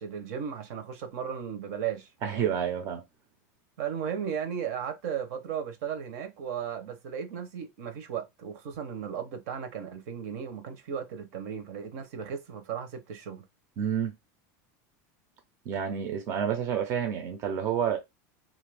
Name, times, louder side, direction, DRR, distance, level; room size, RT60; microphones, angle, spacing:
voice 1, 0.0-2.5 3.8-13.4, right 8 dB, 60° right, 0.8 m, -35 dB
voice 2, 2.2-3.0 13.8-14.1 15.7-18.0, right 8 dB, 35° right, 0.5 m, -29 dB
2.8 x 2.5 x 3.3 m
supercardioid pair, 165°, 9 cm